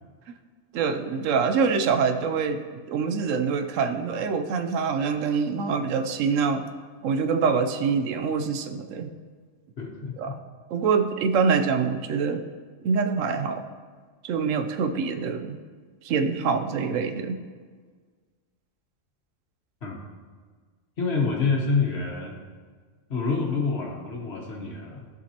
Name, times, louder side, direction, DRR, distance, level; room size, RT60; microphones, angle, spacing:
voice 1, 0.7-6.7 7.0-9.1 10.2-10.4 10.7-12.4 12.8-13.6 14.2-15.6 16.0-17.4, right 5 dB, 80° right, 8 dB, 1.0 m, -25 dB
voice 2, 9.8-10.4 19.8-20.0 21.0-22.4 23.1-25.0, left 4 dB, 55° left, 0 dB, 1.4 m, -27 dB
15.0 x 5.2 x 2.8 m, 1.5 s
omnidirectional pair, 1.3 m